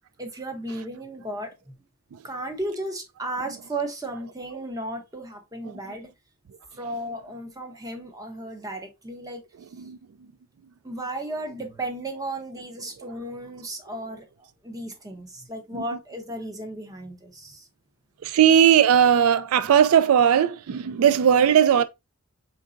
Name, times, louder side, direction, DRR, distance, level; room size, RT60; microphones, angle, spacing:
voice 1, 0.2-1.8 2.2-6.1 6.8-9.4 10.8-17.7, right 1 dB, 15° right, 0.8 m, -34 dB
voice 2, 18.2-21.8, right 9 dB, 85° right, 0.4 m, -18 dB
4.5 x 3.8 x 2.5 m
head